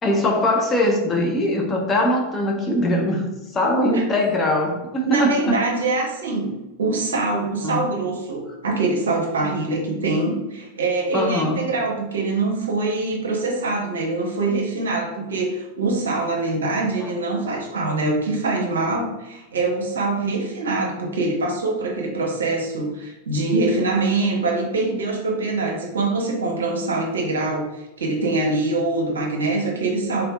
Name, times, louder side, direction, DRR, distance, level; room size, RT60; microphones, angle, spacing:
voice 1, 0.0-5.6 7.6-7.8 11.1-11.6 17.0-17.1, left 1 dB, 20° left, 1 dB, 0.7 m, -21 dB
voice 2, 3.6-4.0 5.0-6.5 6.8-30.3, right 3 dB, 65° right, 1 dB, 0.8 m, -24 dB
4.3 x 3.4 x 2.4 m, 0.99 s
figure-of-eight pair, 90°, 0 cm